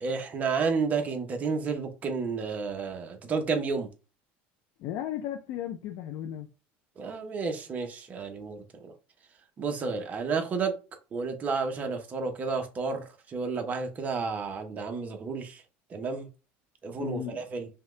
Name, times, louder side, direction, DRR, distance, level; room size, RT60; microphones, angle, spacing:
voice 1, 0.0-3.9 7.0-8.9 9.6-10.7 11.1-15.6 15.9-16.3 16.8-17.7, right 4 dB, 30° right, 0.9 m, -31 dB
voice 2, 4.8-6.5 17.0-17.4, left 11 dB, 65° left, 0.5 m, -35 dB
5.6 x 2.3 x 3.2 m
cardioid pair, 140°, 5 cm